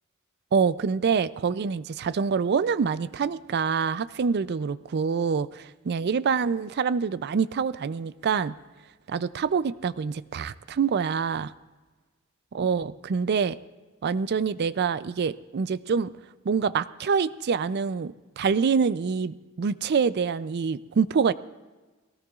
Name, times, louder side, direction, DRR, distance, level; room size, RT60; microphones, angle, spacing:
voice 1, 0.5-8.5 9.1-11.5 12.5-13.6 14.0-16.1 16.5-21.3, right 6 dB, 50° right, 16 dB, 0.4 m, -26 dB
20.5 x 17.5 x 2.4 m, 1.3 s
head